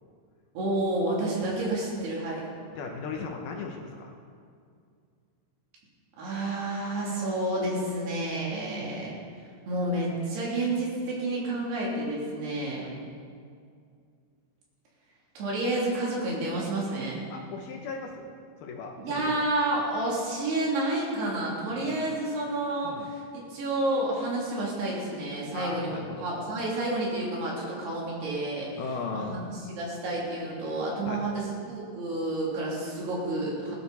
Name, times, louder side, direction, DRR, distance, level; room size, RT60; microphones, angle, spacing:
voice 1, 0.5-2.5 6.2-9.1 9.7-12.9 15.3-17.2 19.0-28.7 29.1-33.8, right 2 dB, 65° right, -4 dB, 5.1 m, -30 dB
voice 2, 2.8-4.1 12.8-13.0 17.3-18.3 18.6-19.5 21.7-22.0 22.8-23.1 25.5-26.3 28.8-29.4 31.1-31.2, left 4 dB, 70° left, 2 dB, 2.5 m, -37 dB
19.5 x 13.0 x 4.3 m, 2.3 s
omnidirectional pair, 5.2 m